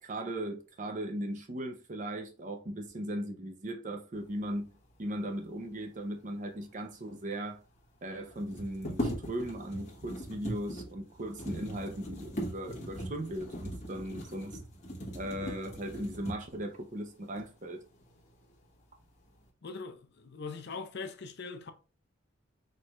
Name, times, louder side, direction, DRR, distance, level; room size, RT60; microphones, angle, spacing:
voice 1, 0.0-7.6 8.0-14.6 15.1-17.8, right 1 dB, 35° right, 0.6 m, -38 dB
sound 1, 6.9-7.0 7.1-7.2 8.3-16.7 17.4-17.5 17.9-18.6 18.9-19.5, equal, 35° left, 1.1 m, -40 dB
voice 2, 19.6-21.7, left 4 dB, 50° left, 0.5 m, -41 dB
4.4 x 3.2 x 2.3 m
head